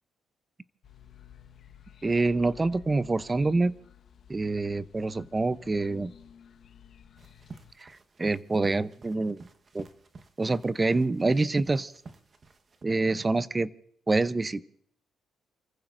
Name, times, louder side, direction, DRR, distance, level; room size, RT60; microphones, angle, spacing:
sound 1, 0.8-7.7, left 9 dB, 60° left, 1.3 m, -53 dB
voice 1, 2.0-3.7 4.3-6.1 7.8-9.5 9.7-9.9 10.4-11.9 12.8-13.7 14.1-14.6, right 3 dB, 25° right, 15 dB, 0.6 m, -26 dB
sound 2, 7.2-12.8, right 4 dB, 40° right, 1.2 m, -49 dB
30.0 x 15.0 x 2.6 m, 0.66 s
cardioid pair, 90°, 0 cm